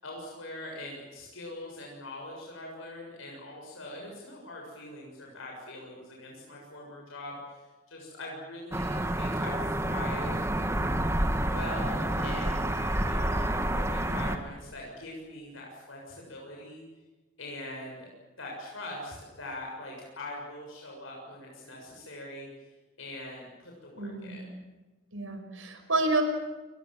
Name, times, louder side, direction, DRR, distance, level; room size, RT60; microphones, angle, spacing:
voice 1, 0.0-10.4 11.4-16.8 17.4-18.1 18.4-22.5 23.0-24.5, left 1 dB, 90° left, -2 dB, 7.0 m, -42 dB
sound 1, 8.7-14.4, right 1 dB, 15° right, 1.7 m, -29 dB
voice 2, 24.0-24.4 25.1-26.2, right 3 dB, 80° right, 6 dB, 5.4 m, -29 dB
28.5 x 22.0 x 7.7 m, 1.2 s
head